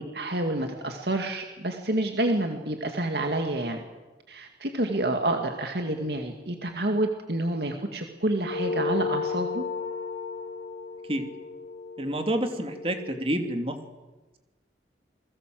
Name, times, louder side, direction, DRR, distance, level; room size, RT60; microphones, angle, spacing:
voice 1, 0.0-3.8 4.3-9.6, right 1 dB, 65° right, 4 dB, 2.3 m, -28 dB
sound 1, 8.4-13.2, left 4 dB, 90° left, 3.3 m, -34 dB
voice 2, 12.0-13.8, right 1 dB, 30° right, 6 dB, 2.9 m, -28 dB
28.5 x 21.5 x 7.8 m, 1.1 s
head